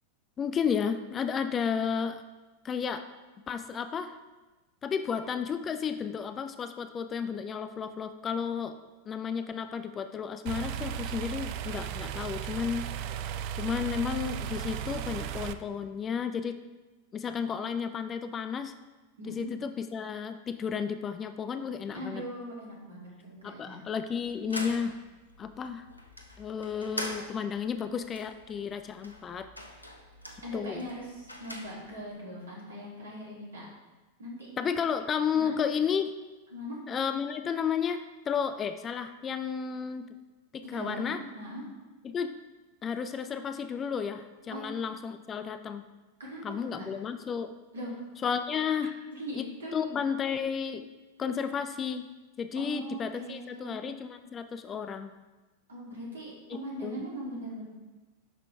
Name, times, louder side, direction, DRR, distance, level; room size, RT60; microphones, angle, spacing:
voice 1, 0.4-2.2 2.6-3.0 3.5-4.1 4.8-8.7 9.1-12.9 13.6-16.6 17.1-18.7 19.3-22.2 23.4-24.9 25.4-25.8 26.4-29.5 30.5-30.9 34.6-36.1 36.9-40.1 40.5-41.2 42.0-42.3 42.8-45.8 46.4-47.5 48.2-48.9 49.3-49.5 49.7-50.9 51.2-52.0 52.4-55.1 56.8-57.0, left 7 dB, 25° left, 10 dB, 0.5 m, -32 dB
sound 1, 10.5-15.5, right 9 dB, 45° right, 0.4 m, -35 dB
voice 2, 19.2-19.6 21.9-23.8 30.4-33.7 34.2-34.5 35.3-35.6 36.5-36.8 40.6-41.6 44.5-44.7 46.2-46.4 46.7-46.9 47.7-48.0 49.1-49.8 52.5-53.8 55.7-57.6, equal, 70° right, -4 dB, 2.9 m, -40 dB
sound 2, 24.1-32.1, left 1 dB, 85° left, 0.9 m, -44 dB
10.5 x 5.9 x 3.5 m, 1.2 s
figure-of-eight pair, 90°, 0 cm